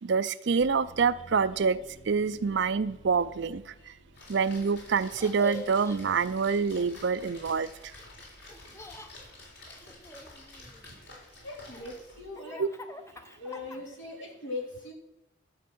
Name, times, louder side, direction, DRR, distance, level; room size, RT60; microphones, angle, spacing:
voice 1, 0.0-1.8 2.1-3.6 4.3-7.7 12.6-12.7, right 5 dB, 65° right, 15 dB, 0.5 m, -26 dB
sound 1, 0.6-8.4 8.9-9.7, left 1 dB, 45° left, 1.2 m, -56 dB
Splash splatter, 4.1-12.3, left 2 dB, 65° left, 4.0 m, -50 dB
Laughter, 5.1-6.0 8.5-9.1 9.7-10.9 11.5-14.1, equal, 15° left, 0.7 m, -44 dB
voice 2, 11.4-12.6 13.4-14.9, left 2 dB, 80° left, -1 dB, 3.2 m, -40 dB
11.0 x 6.7 x 6.2 m, 0.94 s
head